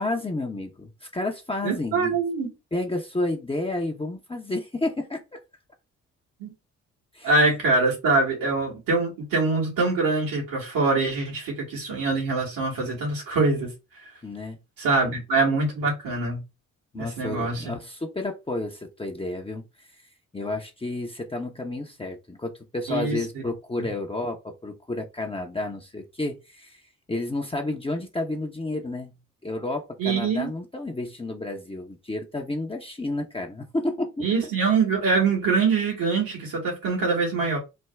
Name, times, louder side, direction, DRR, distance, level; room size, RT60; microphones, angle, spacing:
voice 1, 0.0-2.1 2.7-5.4 7.1-7.3 14.2-14.6 16.9-19.6 20.3-26.8 27.1-29.1 29.4-34.3, left 2 dB, 15° left, 0.7 m, -31 dB
voice 2, 1.6-2.5 6.4-6.5 7.2-13.7 14.8-16.4 16.9-17.8 22.9-23.2 30.0-30.5 34.2-37.6, right 3 dB, 75° right, 1.8 m, -24 dB
3.5 x 2.2 x 3.2 m
hypercardioid pair, 40°, 35 cm